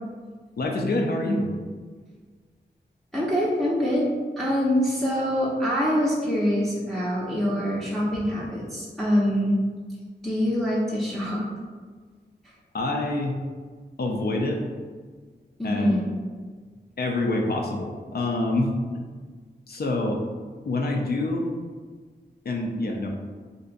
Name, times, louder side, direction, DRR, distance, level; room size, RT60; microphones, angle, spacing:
voice 1, 0.6-1.5 12.7-13.4 14.0-14.6 15.6-15.9 17.0-18.7 19.7-20.2 20.7-21.5 22.5-23.1, left 2 dB, 60° left, 1 dB, 0.5 m, -26 dB
voice 2, 3.1-4.1 4.4-9.6 10.2-11.4 12.4-12.5 15.6-16.1, equal, ahead, -6 dB, 0.6 m, -24 dB
2.5 x 2.2 x 3.8 m, 1.5 s
wide cardioid pair, 65°, 19 cm